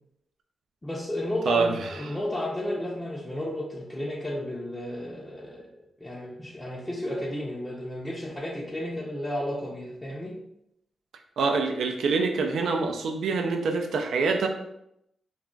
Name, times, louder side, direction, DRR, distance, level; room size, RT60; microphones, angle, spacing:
voice 1, 0.8-5.7 6.0-10.4, left 1 dB, 15° left, -4 dB, 0.5 m, -33 dB
voice 2, 1.5-2.2 11.4-14.5, right 4 dB, 85° right, 4 dB, 0.4 m, -26 dB
2.3 x 2.3 x 3.7 m, 0.79 s
cardioid pair, 55°, 0 cm